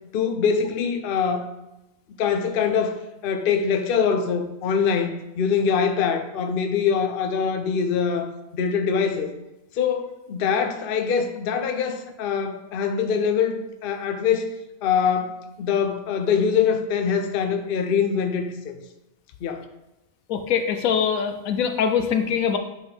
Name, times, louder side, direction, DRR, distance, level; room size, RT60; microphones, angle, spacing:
voice 1, 0.1-1.5 2.2-3.0 3.2-9.3 9.7-14.5 14.8-18.8 19.4-19.6, left 6 dB, 55° left, 6 dB, 0.7 m, -23 dB
voice 2, 20.3-22.6, left 7 dB, 75° left, 7 dB, 1.0 m, -23 dB
8.8 x 4.1 x 3.3 m, 0.94 s
omnidirectional pair, 1.5 m